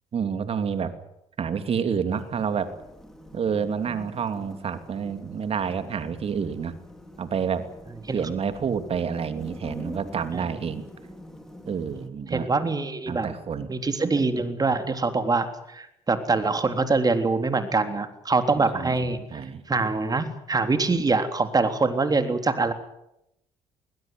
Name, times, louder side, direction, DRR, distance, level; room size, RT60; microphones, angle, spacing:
voice 1, 0.1-0.9 1.4-2.7 3.3-6.7 7.2-7.7 8.1-10.8 11.7-12.5 13.1-13.7 18.6-19.6, right 7 dB, 50° right, 10 dB, 2.9 m, -29 dB
sound 1, 2.1-12.1, equal, 5° left, 4.6 m, -45 dB
voice 2, 12.3-13.3 13.7-19.2 19.7-22.7, right 3 dB, 30° right, 8 dB, 3.6 m, -24 dB
20.5 x 20.5 x 9.4 m, 0.82 s
supercardioid pair, 60°, 13 cm